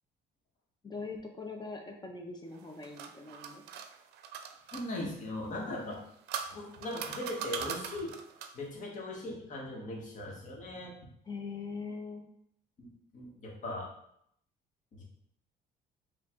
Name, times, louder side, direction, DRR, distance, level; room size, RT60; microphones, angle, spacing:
voice 1, 0.8-3.6 11.2-12.2, left 4 dB, 25° left, 2 dB, 0.7 m, -42 dB
sound 1, 2.5-4.9 5.8-8.7, right 8 dB, 80° right, 0.5 m, -41 dB
voice 2, 4.7-6.0 6.4-8.1 8.5-10.9 12.8-13.9 15.0-15.1, left 1 dB, 50° left, -2 dB, 1.3 m, -39 dB
4.8 x 2.5 x 3.6 m, 0.72 s
cardioid pair, 110°, 17 cm